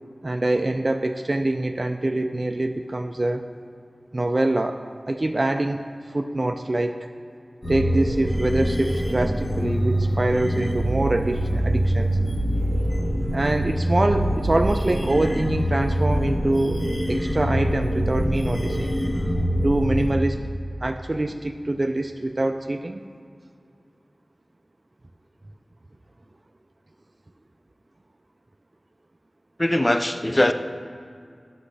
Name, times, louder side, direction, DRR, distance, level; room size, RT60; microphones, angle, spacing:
voice 1, 0.2-3.4 4.1-5.8 6.1-7.0 7.7-12.1 13.3-16.8 17.1-19.0 19.6-20.4 20.8-23.0, right 2 dB, 45° right, 5 dB, 0.3 m, -24 dB
sound 1, 7.6-20.1, equal, 40° left, 1.6 m, -24 dB
voice 2, 29.6-30.5, left 1 dB, 25° left, 9 dB, 0.5 m, -20 dB
12.0 x 6.2 x 3.3 m, 2.4 s
wide cardioid pair, 50°, 0 cm